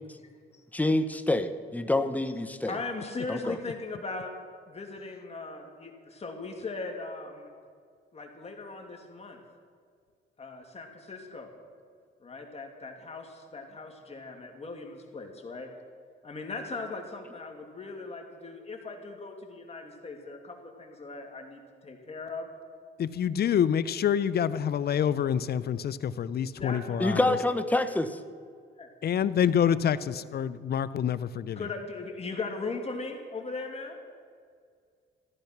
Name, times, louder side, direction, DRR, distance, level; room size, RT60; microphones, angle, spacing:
voice 1, 0.7-2.8 3.3-3.6 27.0-28.2, left 2 dB, 10° left, 9 dB, 0.9 m, -27 dB
voice 2, 2.7-4.3 4.7-7.5 8.1-9.4 10.4-11.5 12.2-15.7 16.2-22.5 26.6-27.5 28.8-28.9 31.6-34.0, left 3 dB, 30° left, 2 dB, 2.4 m, -39 dB
voice 3, 23.0-27.3 29.0-31.7, left 8 dB, 55° left, 15 dB, 0.6 m, -27 dB
14.0 x 12.0 x 5.9 m, 2.1 s
cardioid pair, 90°, 20 cm